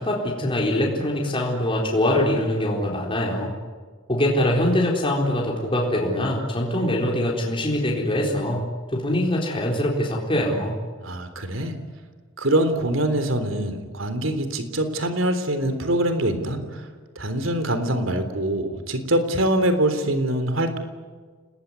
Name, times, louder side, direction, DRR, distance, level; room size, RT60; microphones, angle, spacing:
voice 1, 0.0-3.5 4.1-8.7 8.9-10.8, left 1 dB, 25° left, -2 dB, 4.2 m, -23 dB
voice 2, 11.0-11.7 12.4-16.8 17.2-20.8, right 1 dB, 75° right, 9 dB, 3.6 m, -24 dB
29.0 x 20.0 x 9.8 m, 1.5 s
head